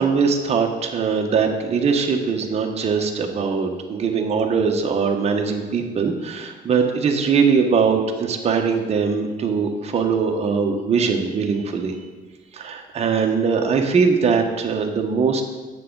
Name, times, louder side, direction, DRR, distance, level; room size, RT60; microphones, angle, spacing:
voice 1, 0.0-11.9 12.6-15.4, right 5 dB, 40° right, 2 dB, 1.0 m, -21 dB
9.4 x 7.0 x 3.9 m, 1.3 s
cardioid pair, 110°, 17 cm